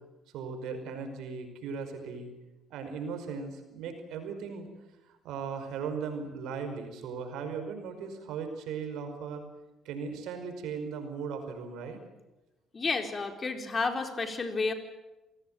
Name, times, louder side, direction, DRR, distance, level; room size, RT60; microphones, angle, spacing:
voice 1, 0.3-2.3 2.7-4.7 5.2-9.4 9.9-12.0, right 5 dB, 80° right, 6 dB, 5.2 m, -37 dB
voice 2, 12.7-14.7, left 4 dB, 35° left, 6 dB, 4.4 m, -31 dB
27.0 x 18.0 x 9.2 m, 1.0 s
supercardioid pair, 70°, 0 cm